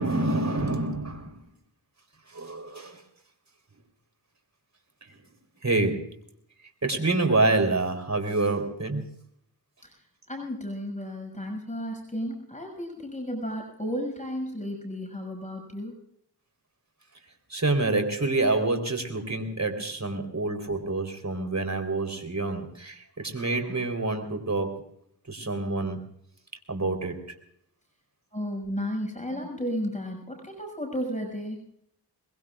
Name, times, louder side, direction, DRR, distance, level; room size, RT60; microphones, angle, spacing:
voice 1, 0.0-1.4 2.3-3.0 5.6-6.1 6.8-9.1 17.5-24.8 25.3-26.0 26.7-27.2, right 2 dB, 40° right, 6 dB, 3.9 m, -27 dB
voice 2, 10.3-15.9 28.3-31.6, equal, 15° left, 2 dB, 6.4 m, -33 dB
23.0 x 22.0 x 2.5 m, 0.72 s
cardioid pair, 45°, 42 cm